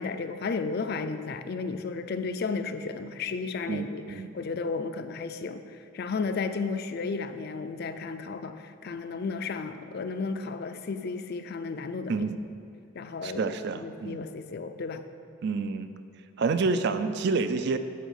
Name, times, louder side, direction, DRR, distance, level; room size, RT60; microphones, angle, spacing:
voice 1, 0.0-12.2 13.0-15.0, left 4 dB, 45° left, 9 dB, 0.4 m, -33 dB
voice 2, 3.7-4.3 12.1-12.4 13.2-14.3 15.4-15.9 16.4-17.8, right 4 dB, 50° right, 10 dB, 0.4 m, -28 dB
10.0 x 3.9 x 6.4 m, 2.6 s
head